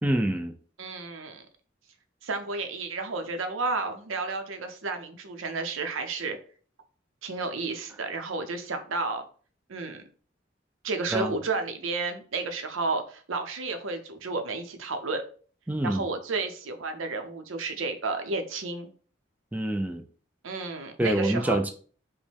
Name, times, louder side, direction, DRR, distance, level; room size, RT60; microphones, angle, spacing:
voice 1, 0.0-0.5 11.1-11.3 15.7-16.0 19.5-20.0 21.0-21.7, right 1 dB, 10° right, 5 dB, 0.3 m, -26 dB
voice 2, 0.8-1.4 2.2-6.4 7.2-9.2 9.7-10.0 10.8-15.2 15.8-18.9 20.4-21.6, right 3 dB, 85° right, 7 dB, 0.6 m, -32 dB
5.1 x 2.1 x 3.3 m, 0.42 s
head